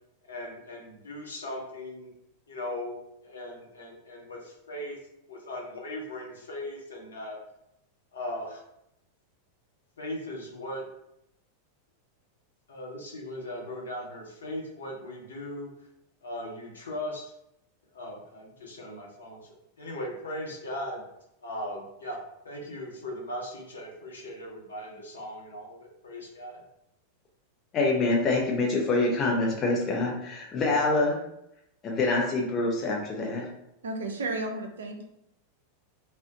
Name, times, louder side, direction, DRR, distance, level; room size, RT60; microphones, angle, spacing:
voice 1, 0.2-2.1 2.5-5.0 5.3-7.4 8.1-8.6 10.0-10.8 12.7-15.7 16.2-17.2 17.9-19.4 19.8-21.0 21.4-22.2 22.4-26.6, left 1 dB, 70° left, -1 dB, 0.8 m, -38 dB
voice 2, 27.7-31.2 31.8-33.5, left 2 dB, 30° left, -1 dB, 0.6 m, -26 dB
voice 3, 33.8-35.0, right 2 dB, 65° right, 4 dB, 0.4 m, -33 dB
2.4 x 2.1 x 3.7 m, 0.81 s
figure-of-eight pair, 90°, 0 cm